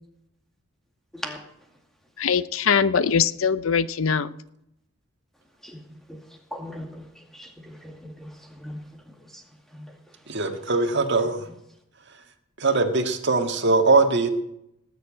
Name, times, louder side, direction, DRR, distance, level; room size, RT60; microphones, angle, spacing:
voice 1, 1.1-2.1 5.3-10.6 11.5-11.6, equal, ahead, 2.2 m, -42 dB
voice 2, 2.2-4.3, left 6 dB, 75° left, 0.6 m, -22 dB
voice 3, 10.3-11.5 12.6-14.3, right 3 dB, 55° right, 1.8 m, -21 dB
19.0 x 7.0 x 8.8 m
head